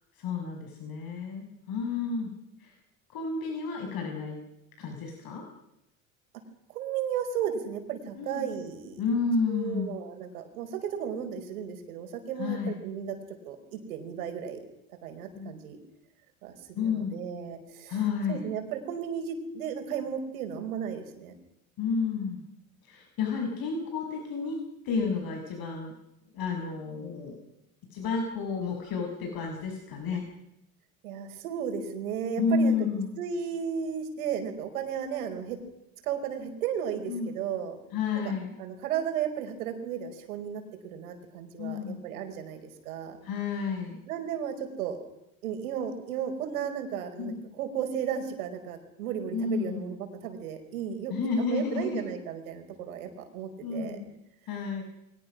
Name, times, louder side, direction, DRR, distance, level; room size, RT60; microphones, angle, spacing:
voice 1, 0.2-2.3 2.6-2.7 3.1-4.4 4.8-5.4 8.1-8.5 9.0-9.9 12.4-12.8 15.3-15.5 16.7-17.2 17.9-18.5 21.8-22.4 22.8-25.9 26.3-27.3 27.9-30.2 32.4-33.1 37.1-37.4 37.9-38.5 41.6-42.0 43.2-44.0 47.2-47.4 49.3-49.8 51.1-52.0 53.6-54.0 54.5-54.8, left 4 dB, 55° left, 2 dB, 6.5 m, -31 dB
voice 2, 6.7-9.0 9.5-13.2 13.5-14.6 15.0-15.8 16.4-18.0 18.3-21.3 31.0-32.9 33.2-35.6 36.0-37.8 38.6-43.2 44.1-45.0 45.4-51.1 51.4-54.0, right 8 dB, 80° right, 6 dB, 5.2 m, -34 dB
29.5 x 23.0 x 6.3 m, 0.85 s
hypercardioid pair, 70°, 42 cm